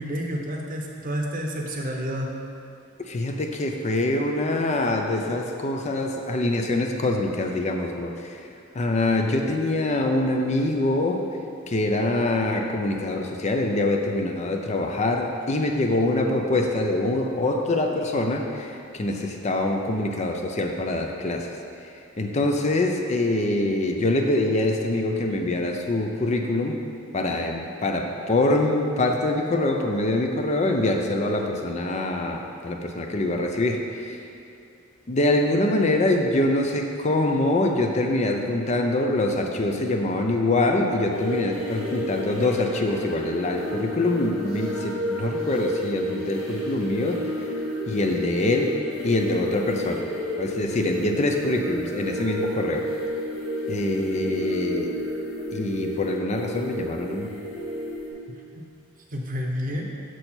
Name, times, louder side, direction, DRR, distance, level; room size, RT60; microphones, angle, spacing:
voice 1, 0.0-2.3 59.1-59.8, equal, 40° right, 1 dB, 0.8 m, -29 dB
voice 2, 3.0-8.5 8.7-11.3 11.7-21.5 21.8-26.8 27.1-34.2 35.1-47.3 47.9-48.7 49.0-50.1 50.4-52.9 53.7-55.0 55.5-57.3, left 2 dB, 35° left, 3 dB, 0.5 m, -24 dB
sound 1, 41.1-58.1, equal, 85° left, 1.6 m, -31 dB
6.6 x 6.2 x 4.3 m, 2.6 s
head